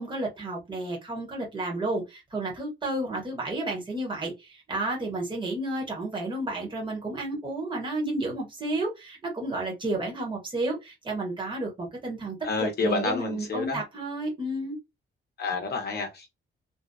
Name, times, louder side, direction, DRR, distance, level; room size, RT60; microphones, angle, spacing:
voice 1, 0.0-14.8, right 2 dB, 25° right, 1.1 m, -31 dB
voice 2, 12.4-13.8 15.4-16.3, left 3 dB, 50° left, 0.7 m, -29 dB
2.7 x 2.2 x 2.2 m
wide cardioid pair, 140°, 21 cm